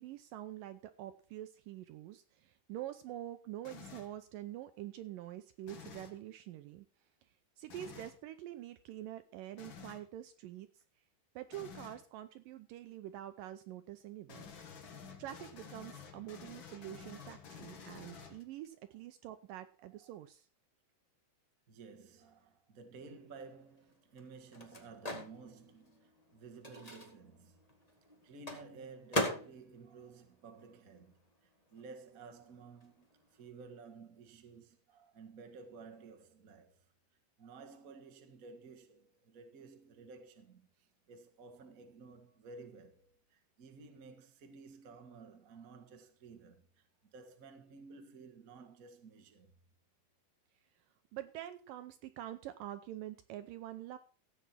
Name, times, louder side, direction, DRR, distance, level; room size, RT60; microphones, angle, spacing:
voice 1, 0.0-6.9 7.6-10.7 11.4-14.5 15.2-20.5 51.1-54.0, right 13 dB, 80° right, 2.0 m, -46 dB
sound 1, 3.6-4.2 5.6-6.2 7.7-8.2 9.6-10.1 11.5-12.0 14.3-18.7, left 6 dB, 50° left, 1.4 m, -51 dB
voice 2, 21.7-27.6 28.2-33.0 33.3-36.8 37.4-49.5, right 4 dB, 60° right, 0.8 m, -54 dB
Microwave oven, 23.2-31.3 31.6-33.5, left 1 dB, 15° left, 1.2 m, -42 dB
15.5 x 8.6 x 4.4 m
omnidirectional pair, 4.5 m